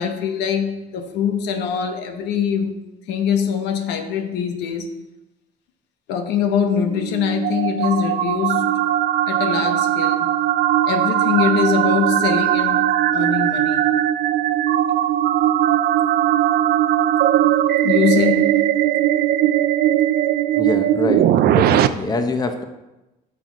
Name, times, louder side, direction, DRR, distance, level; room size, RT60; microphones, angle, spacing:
voice 1, 0.0-2.8 3.1-4.9 6.1-8.7 9.3-10.3 10.9-12.8 13.1-13.9 17.8-18.6, left 7 dB, 90° left, 6 dB, 1.0 m, -22 dB
sound 1, 6.8-21.9, right 12 dB, 65° right, 0.5 m, -19 dB
voice 2, 20.6-22.6, left 2 dB, 25° left, 7 dB, 1.0 m, -24 dB
11.0 x 6.1 x 3.9 m, 0.99 s
cardioid pair, 110°, 17 cm